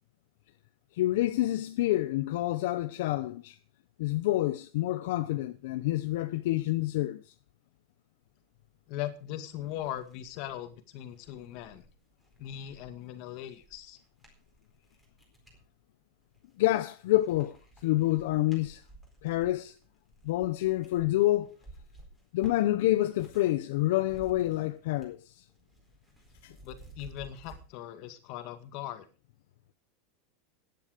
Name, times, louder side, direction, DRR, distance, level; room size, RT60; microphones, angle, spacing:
voice 1, 0.9-3.6 4.0-7.2 16.6-17.6 17.8-18.8 19.2-19.7 20.2-21.6 22.3-25.4 26.4-26.5, left 16 dB, 65° left, 0.9 m, -28 dB
voice 2, 8.9-11.9 12.4-14.0 26.6-29.1, left 12 dB, 40° left, 2.0 m, -39 dB
sound 1, 9.0-9.1 9.5-15.6 16.2-16.8 17.1-23.6 23.8-25.2 25.5-27.6, right 2 dB, 5° right, 4.2 m, -55 dB
14.5 x 10.5 x 5.1 m
supercardioid pair, 175°, 0 cm